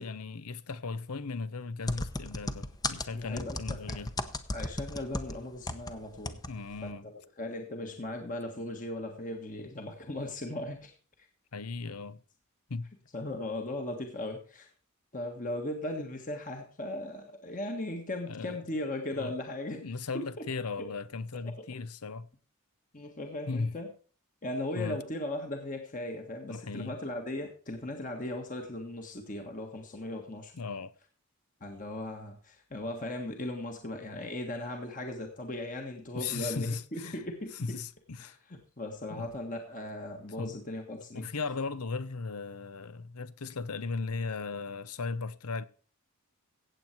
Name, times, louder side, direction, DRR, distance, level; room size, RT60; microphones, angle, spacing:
voice 1, 0.0-4.1 6.5-7.0 11.5-12.2 12.7-12.9 18.3-18.8 19.1-19.3 19.8-22.3 23.5-23.7 24.7-25.0 26.5-27.0 30.6-30.9 36.1-37.2 37.6-38.4 39.1-39.3 40.4-40.6 41.1-45.6, left 4 dB, 85° left, 0.8 m, -37 dB
sound 1, 1.9-5.9 6.2-6.5 6.8-6.9, left 2 dB, 15° left, 0.8 m, -35 dB
voice 2, 3.1-4.1 4.5-6.4 6.8-10.9 13.1-14.7 15.1-19.9 20.1-20.5 20.8-20.9 21.4-21.7 22.9-23.9 24.4-30.5 31.6-37.8 38.2-41.3, left 1 dB, 35° left, 1.6 m, -38 dB
16.0 x 8.0 x 4.5 m
head